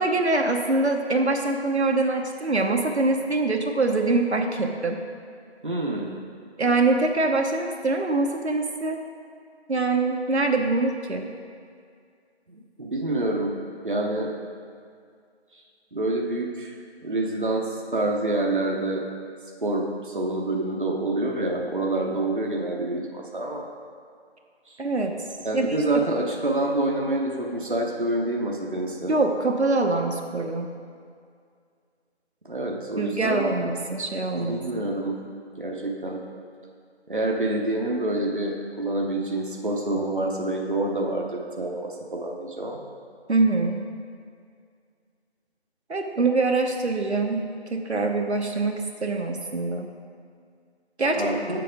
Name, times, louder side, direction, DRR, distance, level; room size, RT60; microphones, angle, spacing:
voice 1, 0.0-5.0 6.6-9.0 9.7-11.3 24.8-25.2 25.5-25.8 29.1-30.7 33.0-34.8 43.3-43.9 45.9-49.9 51.0-51.3, right 3 dB, 75° right, 3 dB, 0.9 m, -24 dB
voice 2, 5.6-6.2 12.5-13.5 13.8-14.3 15.9-16.7 17.0-19.0 19.6-23.7 24.7-24.8 25.4-29.1 32.5-33.5 34.4-35.2 35.6-36.2 37.1-42.8 51.1-51.4, right 2 dB, 50° right, -1 dB, 0.8 m, -27 dB
9.1 x 6.7 x 3.8 m, 2.2 s
figure-of-eight pair, 180°, 33 cm